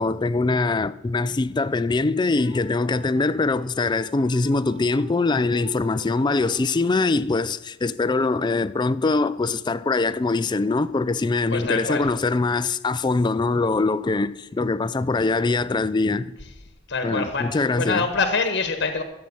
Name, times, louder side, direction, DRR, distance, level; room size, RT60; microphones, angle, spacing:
voice 1, 0.0-16.3 17.0-18.0, left 3 dB, 20° left, 0.3 m, -23 dB
sound 1, 2.4-7.3, right 4 dB, 70° right, 1.5 m, -45 dB
voice 2, 11.5-12.1 16.9-19.0, left 4 dB, 55° left, 1.1 m, -25 dB
14.0 x 7.7 x 5.4 m
head